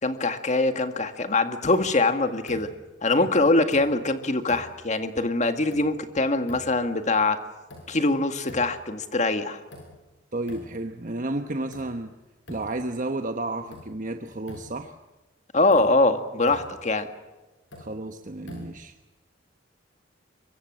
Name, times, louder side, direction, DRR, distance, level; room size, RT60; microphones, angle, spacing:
voice 1, 0.0-2.7 3.0-7.4 7.9-9.6 15.5-17.1, left 2 dB, 40° left, 8 dB, 1.9 m, -23 dB
sound 1, 1.7-2.1 2.5-3.0 3.7-4.2 4.5-4.9 5.7-6.1 6.5-6.9 7.7-8.2 8.5-9.0 9.7-10.2 10.5-10.9 11.7-12.1 12.5-13.0 13.7-14.1 14.5-15.0 15.7-16.1 16.5-16.9 17.7-18.1 18.5-19.0, left 1 dB, 65° left, 7.3 m, -46 dB
voice 2, 10.3-12.1 12.5-14.9 17.8-19.0, right 2 dB, 45° right, 6 dB, 1.1 m, -32 dB
24.5 x 23.5 x 7.6 m, 1.1 s
head